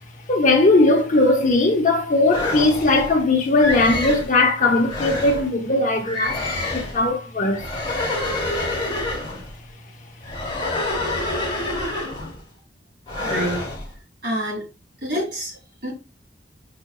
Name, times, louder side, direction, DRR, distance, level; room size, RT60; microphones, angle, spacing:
voice 1, 0.3-6.5 6.7-7.7, left 2 dB, 45° left, 0.8 m, -18 dB
sound 1, 2.3-3.1 3.6-4.3 4.8-5.5 6.0-7.0 7.5-9.5 10.2-12.4 13.1-13.9, left 2 dB, 30° left, 1.2 m, -27 dB
voice 2, 13.2-13.6 14.2-14.6 15.0-15.5 15.8-15.9, equal, 65° right, 1.9 m, -26 dB
5.0 x 2.5 x 2.2 m
head